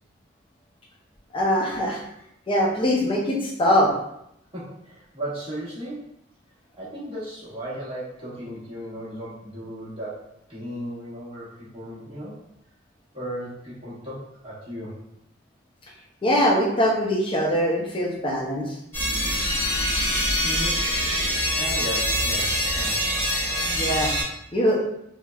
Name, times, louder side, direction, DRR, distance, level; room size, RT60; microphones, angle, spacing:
voice 1, 1.3-2.0 2.5-3.9 16.2-18.7 23.7-24.1 24.5-24.8, equal, 25° left, -2 dB, 0.5 m, -22 dB
voice 2, 4.5-6.1 6.7-12.4 13.1-15.0 20.4-20.8 21.5-23.0, equal, 30° right, -8 dB, 1.0 m, -36 dB
sound 1, 18.9-24.2, equal, 10° left, 1.2 m, -24 dB
3.3 x 2.1 x 2.3 m, 0.78 s
head